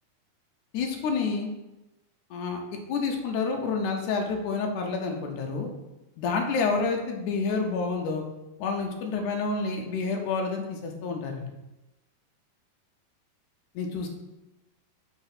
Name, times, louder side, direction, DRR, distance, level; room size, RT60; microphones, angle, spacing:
voice 1, 0.7-1.5 2.3-2.6 2.9-5.7 6.2-8.2 8.6-11.5 13.8-14.1, left 4 dB, 80° left, 2 dB, 1.8 m, -29 dB
5.7 x 3.5 x 5.7 m, 0.98 s
omnidirectional pair, 4.4 m